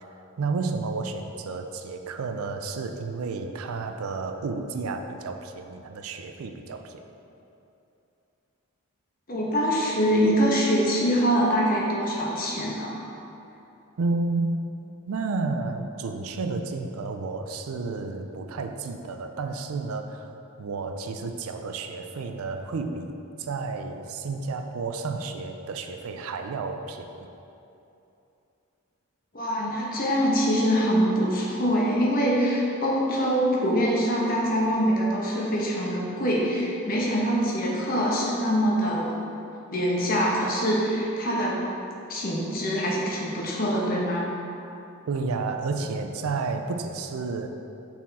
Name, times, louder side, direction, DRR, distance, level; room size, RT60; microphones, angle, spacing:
voice 1, 0.4-7.0 14.0-14.6 15.1-20.3 20.6-27.3 45.1-47.5, right 3 dB, 80° right, 6 dB, 0.4 m, -31 dB
voice 2, 9.3-13.0 29.3-39.1 39.7-41.6 42.1-44.3, equal, 40° left, -3 dB, 1.0 m, -24 dB
6.1 x 4.3 x 4.1 m, 2.8 s
head